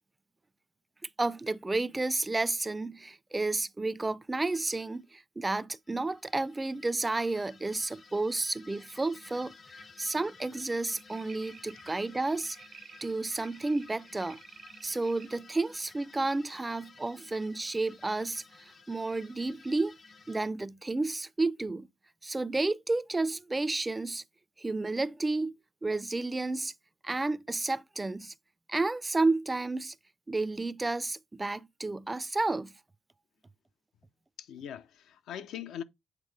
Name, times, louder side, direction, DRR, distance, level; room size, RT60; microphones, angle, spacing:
voice 1, 1.2-12.6 13.0-14.4 14.8-20.0 20.3-21.9 22.2-24.2 24.6-25.6 25.8-26.7 27.0-28.3 28.7-29.9 30.3-32.7, right 2 dB, 20° right, 0.3 m, -31 dB
sound 1, 4.5-5.0 5.9-20.5, left 4 dB, 40° left, 0.6 m, -55 dB
sound 2, 10.9-15.3 15.9-16.0, right 8 dB, 65° right, 0.5 m, -54 dB
voice 2, 34.4-35.8, left 9 dB, 80° left, 0.4 m, -41 dB
8.1 x 3.7 x 3.3 m
cardioid pair, 90°, 0 cm